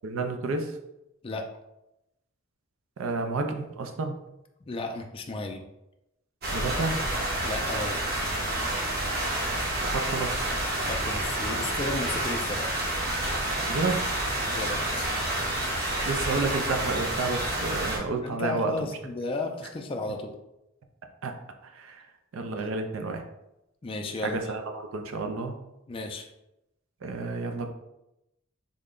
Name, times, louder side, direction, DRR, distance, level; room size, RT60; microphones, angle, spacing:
voice 1, 0.0-0.8 3.0-4.1 6.5-7.0 9.8-10.5 13.7-14.1 16.0-18.9 21.2-21.4 21.6-22.1 22.3-23.2 24.2-25.5 27.0-27.7, right 3 dB, 85° right, 5 dB, 0.5 m, -30 dB
voice 2, 4.7-5.6 7.4-8.0 10.8-12.7 13.2-13.3 14.5-15.1 18.2-20.3 22.6-22.7 23.8-24.4 25.9-26.3, left 2 dB, 25° left, 3 dB, 0.3 m, -34 dB
sound 1, 6.4-18.0, right 1 dB, 50° right, 0.8 m, -29 dB
3.6 x 2.1 x 3.7 m, 0.89 s
head